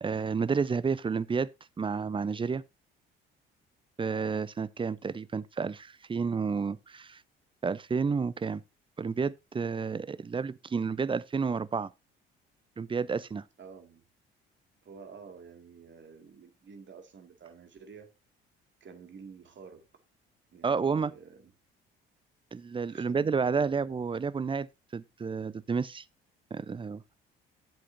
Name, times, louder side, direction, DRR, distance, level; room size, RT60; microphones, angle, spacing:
voice 1, 0.0-1.5 1.8-2.6 4.0-7.2 7.6-8.6 9.0-11.9 12.8-13.4 20.6-21.1 22.5-24.7 24.9-26.0 26.5-27.0, right 5 dB, 20° right, 0.5 m, -30 dB
voice 2, 13.6-14.0 14.8-18.1 18.8-19.8 20.5-21.5 22.9-24.0, right 5 dB, 40° right, 2.2 m, -50 dB
12.0 x 7.7 x 2.7 m
figure-of-eight pair, 50°, 29 cm